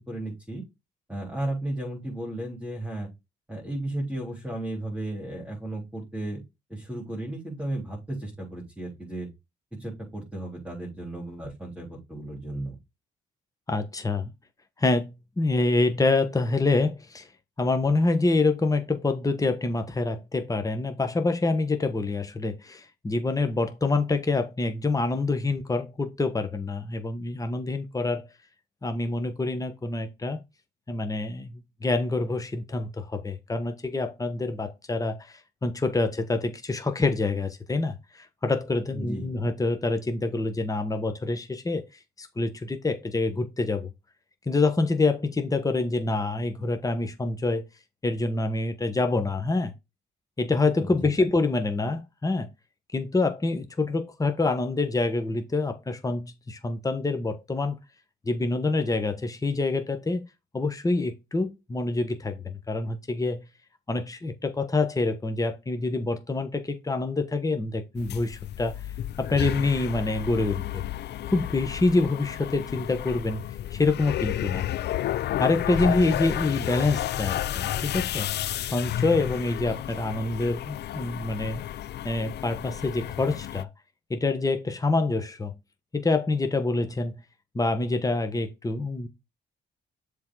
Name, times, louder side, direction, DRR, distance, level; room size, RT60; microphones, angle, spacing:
voice 1, 0.1-0.6 1.1-3.1 3.5-6.4 6.7-9.3 9.8-12.8 38.9-39.3 50.8-51.1, right 1 dB, 5° right, 3.5 m, -34 dB
voice 2, 13.7-14.3 14.8-17.3 17.6-28.3 28.8-30.4 30.9-41.8 42.2-43.9 44.5-47.6 48.0-49.7 50.4-52.5 52.9-57.8 58.2-60.2 60.5-63.5 63.9-68.7 69.2-70.8 71.2-73.4 73.7-74.7 75.4-78.3 78.6-81.6 82.0-83.7 84.1-85.5 85.9-87.2 87.5-89.1, left 3 dB, 15° left, 1.2 m, -26 dB
sound 1, 68.0-83.6, left 12 dB, 60° left, 0.4 m, -32 dB
7.2 x 3.8 x 4.7 m
cardioid pair, 90°, 20 cm